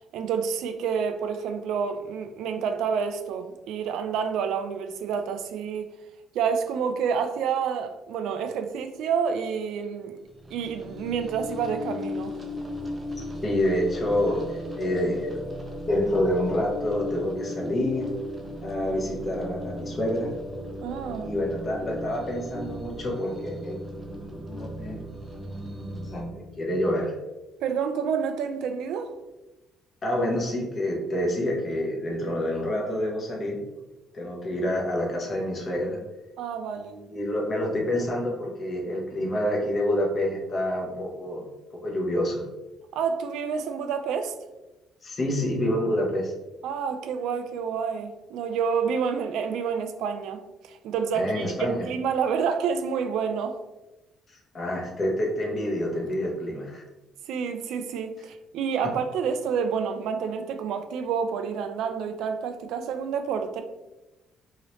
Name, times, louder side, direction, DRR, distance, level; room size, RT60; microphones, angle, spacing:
voice 1, 0.1-5.9 6.3-10.2 10.5-12.4 20.8-21.3 27.6-29.1 36.4-36.9 42.9-44.3 46.6-53.6 57.3-63.6, right 6 dB, 75° right, 0.3 m, -28 dB
sound 1, 10.3-26.2, left 1 dB, 15° right, 0.4 m, -36 dB
voice 2, 13.4-15.4 15.8-18.1 18.6-20.3 21.1-25.0 25.3-27.2 30.0-33.6 34.1-36.0 36.7-41.4 41.8-42.4 45.0-46.3 51.1-51.8 54.5-56.8, left 1 dB, 25° left, 0.7 m, -28 dB
2.9 x 2.8 x 3.0 m
cardioid pair, 180°, 0 cm